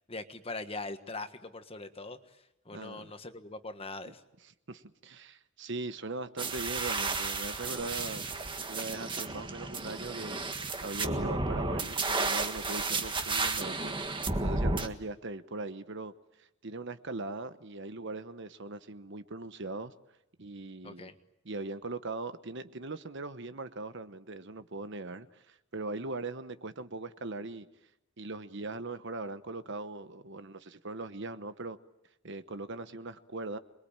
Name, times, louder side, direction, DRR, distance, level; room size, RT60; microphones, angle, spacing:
voice 1, 0.1-2.2 2.6-4.2 20.8-21.1, left 3 dB, 25° left, 8 dB, 1.5 m, -41 dB
voice 2, 2.7-3.1 4.0-4.1 4.4-8.3 8.7-14.0 14.4-16.1 16.4-19.9 20.4-21.1 21.4-27.7 28.2-31.8 32.2-33.6, right 3 dB, 55° right, 11 dB, 1.1 m, -40 dB
sound 1, 6.4-14.9, right 3 dB, 20° right, 1.6 m, -33 dB
27.0 x 22.5 x 8.9 m, 0.86 s
head